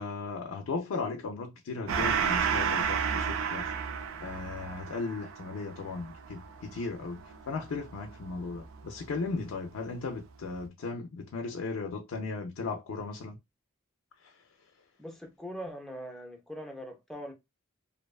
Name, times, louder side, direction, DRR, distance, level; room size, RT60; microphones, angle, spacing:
voice 1, 0.0-3.7 4.2-13.4 14.2-14.4, left 4 dB, 85° left, 0.4 m, -36 dB
Gong, 1.9-8.8, right 7 dB, 85° right, 0.3 m, -32 dB
voice 2, 15.0-17.3, equal, ahead, 0.4 m, -41 dB
2.5 x 2.2 x 2.3 m
head